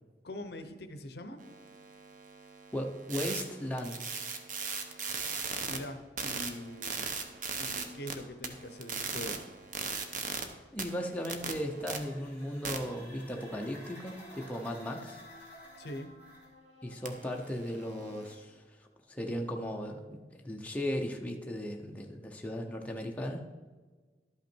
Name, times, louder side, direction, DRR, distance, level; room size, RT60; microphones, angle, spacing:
voice 1, 0.2-1.4 5.7-7.1 7.6-9.4 15.8-16.1, left 1 dB, 60° left, 9 dB, 0.7 m, -43 dB
sound 1, 1.4-5.8 6.2-8.1 8.4-10.4 10.8-12.0 12.6-12.8 17.1-18.3, right 5 dB, 50° right, 0.9 m, -39 dB
voice 2, 2.7-4.0 10.7-15.2 16.8-23.4, equal, 10° left, 1 dB, 0.7 m, -37 dB
sound 2, 11.6-16.5, right 1 dB, 10° right, 2.6 m, -53 dB
sound 3, 11.9-18.5, left 3 dB, 40° left, 2.2 m, -57 dB
11.5 x 5.7 x 4.4 m, 1.4 s
head